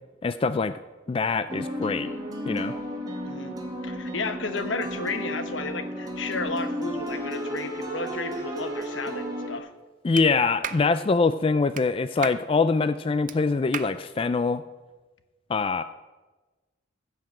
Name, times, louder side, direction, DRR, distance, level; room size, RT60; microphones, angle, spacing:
voice 1, 0.2-0.7 1.1-2.1 2.5-2.8 10.0-14.6 15.5-15.8, left 4 dB, 30° left, 12 dB, 0.3 m, -24 dB
sound 1, 1.5-9.6, equal, 20° right, 1.9 m, -33 dB
voice 2, 3.2-3.6 3.8-9.7, left 3 dB, 75° left, 9 dB, 1.1 m, -33 dB
Clapping, 10.2-10.3 10.6-10.9 11.7-11.9 12.2-12.4 13.3-13.4 13.7-13.9, right 8 dB, 45° right, 0.5 m, -33 dB
15.0 x 5.9 x 7.7 m, 1.2 s
head